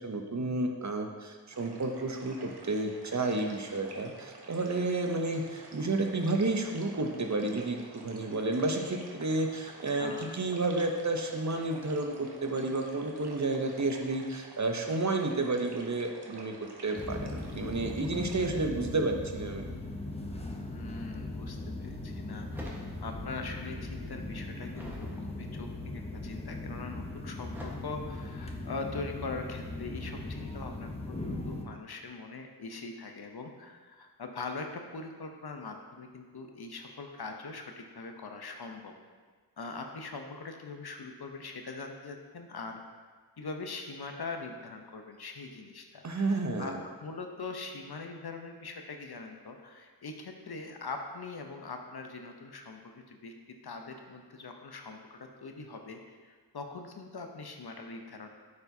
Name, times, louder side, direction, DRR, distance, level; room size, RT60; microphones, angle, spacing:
voice 1, 0.0-16.5 16.8-19.6 46.0-46.8, right 2 dB, 45° right, 3 dB, 0.7 m, -31 dB
sound 1, 1.5-18.5, right 2 dB, 75° right, 0.9 m, -50 dB
sound 2, 16.9-31.7, left 2 dB, 15° left, 0.7 m, -39 dB
voice 2, 20.7-22.5 23.0-38.9 39.6-42.8 43.4-53.3 53.6-58.3, left 3 dB, 65° left, 4 dB, 0.8 m, -42 dB
sound 3, 22.5-23.5 23.8-25.2 25.8-26.2 27.5-27.7, equal, 5° right, 1.2 m, -46 dB
9.5 x 4.5 x 2.7 m, 1.5 s
wide cardioid pair, 45°, 40 cm